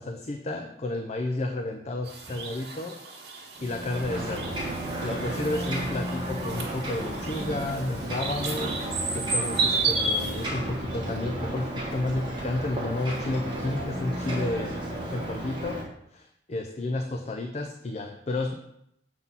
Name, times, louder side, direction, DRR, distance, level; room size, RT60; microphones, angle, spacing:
voice 1, 0.0-3.0 3.6-4.6 5.0-8.8 9.1-14.8 15.1-15.8 16.1-18.5, left 2 dB, 40° left, 4 dB, 0.5 m, -31 dB
sound 1, 2.1-10.4, right 3 dB, 75° right, 1.6 m, -32 dB
Ocean, 3.5-15.8, right 1 dB, 25° right, 1.6 m, -33 dB
7.2 x 4.0 x 5.5 m, 0.77 s
head